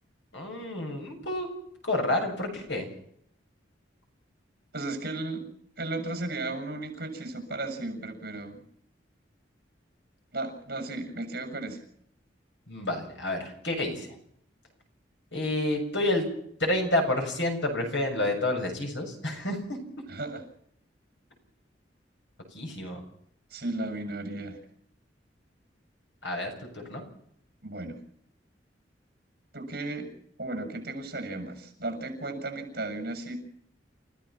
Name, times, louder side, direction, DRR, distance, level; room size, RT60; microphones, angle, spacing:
voice 1, 0.3-1.5 1.8-2.9 12.7-14.1 15.3-16.3 16.6-19.6 22.5-23.0 26.2-27.0, left 1 dB, 80° left, 3 dB, 7.0 m, -29 dB
voice 2, 4.7-5.5 5.8-8.6 10.3-11.8 20.1-20.4 23.5-24.6 27.6-28.0 29.5-30.1 30.4-33.4, right 2 dB, 55° right, 5 dB, 7.1 m, -35 dB
29.5 x 15.5 x 6.0 m, 0.69 s
head